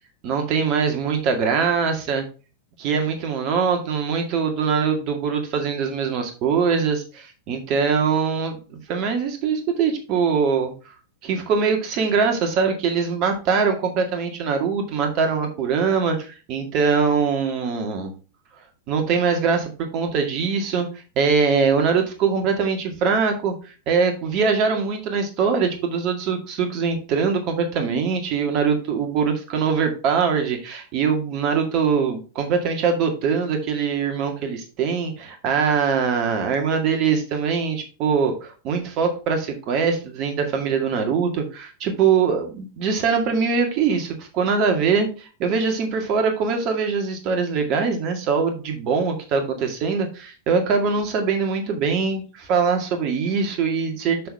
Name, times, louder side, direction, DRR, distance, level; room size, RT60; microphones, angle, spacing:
voice 1, 0.2-2.2 2.8-10.7 11.2-18.1 18.9-20.9 21.2-23.5 23.9-54.3, right 5 dB, 40° right, 5 dB, 2.1 m, -22 dB
6.7 x 6.4 x 3.6 m, 0.34 s
figure-of-eight pair, 90°, 0 cm